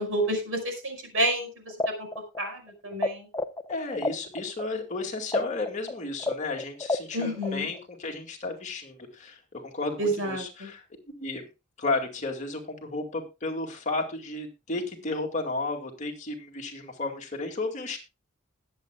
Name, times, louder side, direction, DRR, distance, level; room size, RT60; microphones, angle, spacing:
voice 1, 0.0-1.5 2.0-2.1 2.4-3.3 7.1-7.7 10.0-10.7, right 1 dB, 75° right, 4 dB, 5.5 m, -29 dB
sound 1, 1.7-3.1 3.3-7.8, left 2 dB, 15° left, 0.6 m, -30 dB
voice 2, 3.7-10.8 11.2-11.4 11.8-18.0, left 3 dB, 35° left, 1 dB, 2.3 m, -33 dB
20.5 x 8.0 x 2.4 m, 0.26 s
head